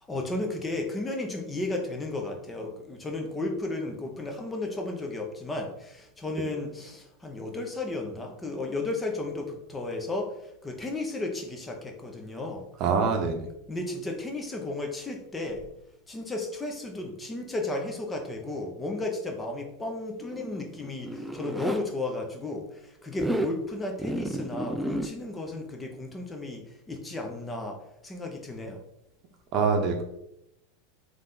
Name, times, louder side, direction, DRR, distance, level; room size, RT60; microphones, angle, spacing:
voice 1, 0.1-10.3 10.6-12.7 13.7-15.7 16.1-26.6 26.9-28.8, left 2 dB, 15° left, 2 dB, 0.8 m, -34 dB
voice 2, 12.8-13.4 29.5-30.0, right 5 dB, 45° right, 4 dB, 0.8 m, -24 dB
Zipper (clothing), 20.2-21.8 23.1-23.6 24.0-25.1, right 1 dB, 5° right, 0.4 m, -31 dB
3.6 x 3.3 x 3.9 m, 0.83 s
hypercardioid pair, 110°, 0 cm